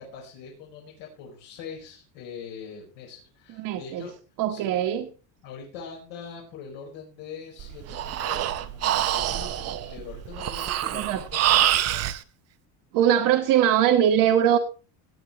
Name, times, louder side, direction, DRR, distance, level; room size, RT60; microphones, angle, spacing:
voice 1, 0.0-4.1 4.5-4.8 5.4-12.0, left 6 dB, 70° left, -2 dB, 5.0 m, -42 dB
voice 2, 3.5-4.0 4.4-5.1 10.9-11.2 12.9-14.6, right 10 dB, 55° right, 0 dB, 1.5 m, -21 dB
Breathing, 7.6-12.2, right 12 dB, 35° right, 0.8 m, -26 dB
18.0 x 9.3 x 3.1 m, 0.35 s
cardioid pair, 160°, 46 cm